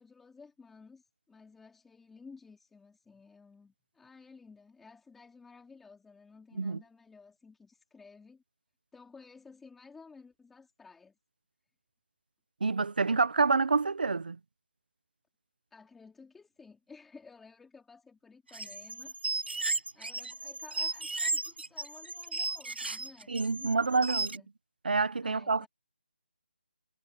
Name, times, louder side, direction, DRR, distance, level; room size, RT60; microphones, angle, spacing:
voice 1, 0.0-8.4 8.9-11.2 15.7-19.2 19.9-23.3 23.6-24.5 25.2-25.7, left 4 dB, 5° left, 4.1 m, -55 dB
voice 2, 12.6-14.4 23.3-24.4 24.8-25.7, right 4 dB, 60° right, 1.2 m, -27 dB
sound 1, 18.5-24.4, right 3 dB, 90° right, 6.4 m, -35 dB
hypercardioid pair, 175°, 6 cm